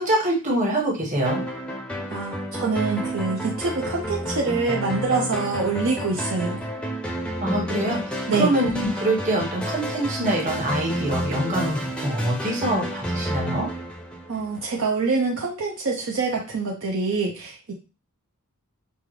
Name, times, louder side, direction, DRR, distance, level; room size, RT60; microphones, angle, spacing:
voice 1, 0.0-1.4 7.4-13.7, right 1 dB, 35° right, -2 dB, 1.4 m, -25 dB
sound 1, 1.3-14.8, equal, 5° left, 0.6 m, -30 dB
voice 2, 2.1-6.6 8.3-8.5 14.3-17.7, right 4 dB, 60° right, -1 dB, 0.7 m, -25 dB
5.4 x 2.3 x 3.1 m, 0.33 s
head